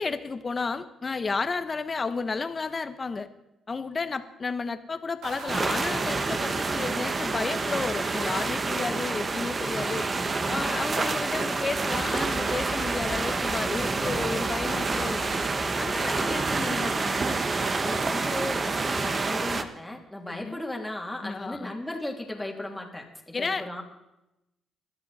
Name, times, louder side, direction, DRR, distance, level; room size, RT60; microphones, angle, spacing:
voice 1, 0.0-3.3 3.7-10.1 10.5-15.4 15.8-17.4 20.3-20.6 21.2-21.7 23.3-23.6, left 4 dB, 30° left, 10 dB, 1.2 m, -32 dB
sound 1, 5.2-9.7, right 3 dB, 85° right, 3.3 m, -45 dB
sound 2, 5.5-19.6, right 3 dB, 35° right, 1.2 m, -28 dB
voice 2, 17.8-23.8, left 1 dB, 5° left, 0 dB, 3.0 m, -36 dB
20.5 x 13.0 x 4.3 m, 0.91 s
cardioid pair, 90°, 0 cm